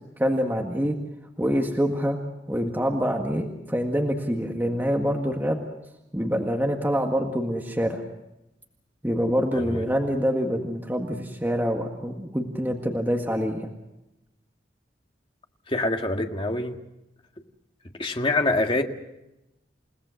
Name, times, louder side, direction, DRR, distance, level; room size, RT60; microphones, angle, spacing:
voice 1, 0.2-1.0 1.4-2.2 2.5-5.6 6.1-8.0 9.0-13.7, equal, 10° right, 1 dB, 1.8 m, -25 dB
voice 2, 15.7-16.8 18.0-18.8, left 2 dB, 30° left, 4 dB, 1.7 m, -25 dB
29.5 x 18.0 x 6.4 m, 0.93 s
head